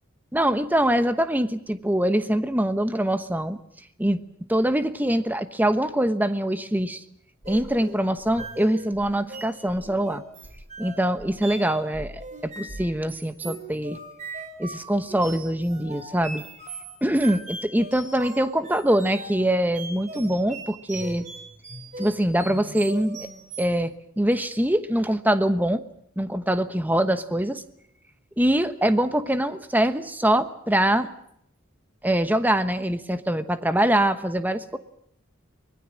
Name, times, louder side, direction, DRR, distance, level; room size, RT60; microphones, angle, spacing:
voice 1, 0.3-3.6 4.0-4.2 4.5-7.0 7.5-10.2 10.8-14.0 14.6-16.4 17.0-21.2 22.0-23.3 23.6-25.8 26.2-27.6 28.4-31.1 32.0-34.8, right 1 dB, 10° right, 10 dB, 1.1 m, -23 dB
sound 1, 7.4-23.8, right 2 dB, 35° right, 4.8 m, -40 dB
24.5 x 20.5 x 7.6 m, 0.72 s
head